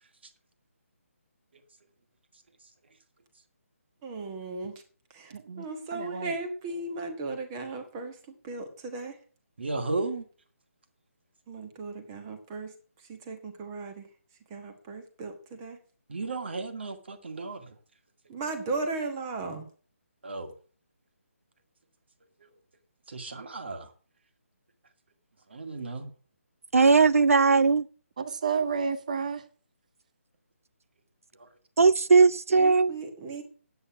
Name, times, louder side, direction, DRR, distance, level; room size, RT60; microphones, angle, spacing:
voice 1, 4.0-4.7 5.1-8.2 8.4-9.1 11.5-12.7 13.1-14.1 14.5-15.8 18.3-19.6 32.5-33.4, right 3 dB, 15° right, 1.3 m, -36 dB
voice 2, 5.3-5.6 5.9-6.3 28.2-29.4, right 6 dB, 30° right, 0.9 m, -31 dB
voice 3, 9.6-10.3 16.1-17.7 20.2-20.5 22.4-22.5 23.1-23.9 25.5-26.1 31.4-31.5, right 3 dB, 50° right, 2.1 m, -34 dB
voice 4, 26.7-27.9 31.8-32.9, right 4 dB, 75° right, 0.5 m, -19 dB
9.6 x 8.6 x 7.2 m
hypercardioid pair, 175°, 8 cm